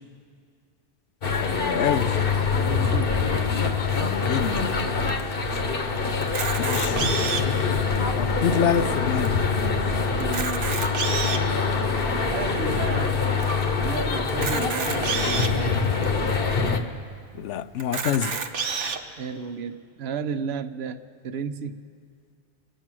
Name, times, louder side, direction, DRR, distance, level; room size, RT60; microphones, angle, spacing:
sound 1, 1.2-16.8, left 4 dB, 55° left, 1.1 m, -24 dB
voice 1, 1.3-2.2 4.0-4.8 6.6-7.1 8.1-9.4 17.3-18.4, left 9 dB, 90° left, 0.9 m, -26 dB
voice 2, 2.5-3.2 10.2-10.6 12.3-13.3 13.8-15.8 19.2-21.8, right 6 dB, 65° right, 0.9 m, -33 dB
Camera, 6.2-7.6 8.3-8.4 8.6-8.7 9.3-9.4 10.2-11.5 12.2-12.3 14.3-15.5 16.2-16.3 16.6-16.7 17.8-19.0, right 5 dB, 85° right, 1.2 m, -29 dB
26.0 x 9.0 x 6.1 m
omnidirectional pair, 1.2 m